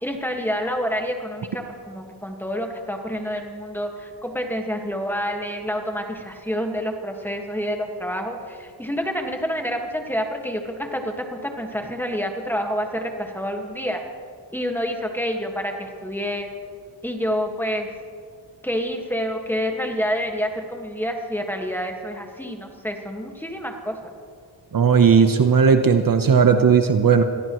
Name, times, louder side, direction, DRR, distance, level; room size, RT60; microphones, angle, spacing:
voice 1, 0.0-14.0 14.5-16.5 17.0-17.9 18.6-24.1, equal, 5° left, 2 dB, 1.7 m, -28 dB
voice 2, 24.7-27.2, right 6 dB, 50° right, 7 dB, 1.0 m, -16 dB
25.0 x 17.0 x 3.1 m, 2.1 s
wide cardioid pair, 115°, 43 cm